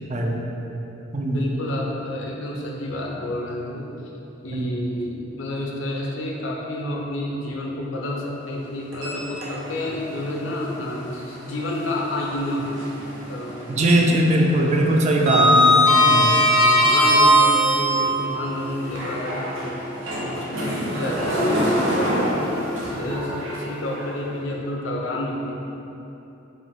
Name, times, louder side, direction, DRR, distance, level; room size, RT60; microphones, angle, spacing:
voice 1, 0.1-0.4 1.1-1.5 4.5-4.8 13.7-15.8 16.1-16.3, right 1 dB, 35° right, 1 dB, 0.4 m, -20 dB
voice 2, 1.3-3.9 4.4-13.9 14.6-14.8 15.2-19.8 20.1-25.5, left 1 dB, 70° left, -1 dB, 0.6 m, -30 dB
Sliding door, 8.9-9.9 10.3-10.4 12.1-13.2 13.4-13.8 14.1-18.2 18.8-24.0, equal, 75° right, 0.9 m, -20 dB
5.2 x 2.5 x 3.5 m, 3.0 s
head